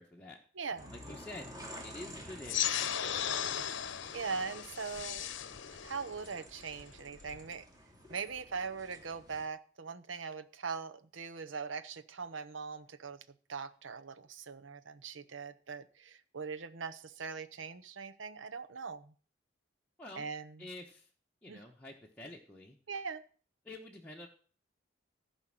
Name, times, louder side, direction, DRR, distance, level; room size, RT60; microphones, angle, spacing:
voice 1, 0.0-0.4 0.9-1.6 1.8-2.8 20.0-20.3 20.6-21.1 21.4-22.8 23.6-24.3, left 2 dB, 5° left, 1.2 m, -48 dB
voice 2, 0.6-0.9 4.1-5.3 5.8-7.6 8.1-13.2 13.5-19.1 20.1-20.7 21.5-21.6 22.9-23.2, right 5 dB, 80° right, 0.8 m, -41 dB
sound 1, 0.8-9.5, equal, 20° right, 2.6 m, -51 dB
sound 2, 2.4-7.5, left 9 dB, 70° left, 0.8 m, -37 dB
15.0 x 5.3 x 7.6 m
head